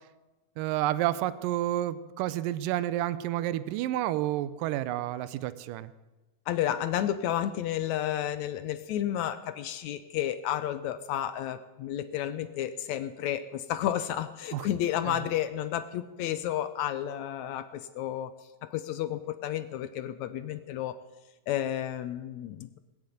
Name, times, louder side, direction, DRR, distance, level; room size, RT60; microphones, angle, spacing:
voice 1, 0.6-5.9 14.5-14.7 15.1-15.2, right 13 dB, 85° right, 15 dB, 2.3 m, -30 dB
voice 2, 6.5-18.3 18.6-21.0 21.5-22.8, left 11 dB, 75° left, 12 dB, 1.7 m, -31 dB
20.5 x 7.5 x 9.1 m, 1.1 s
omnidirectional pair, 3.8 m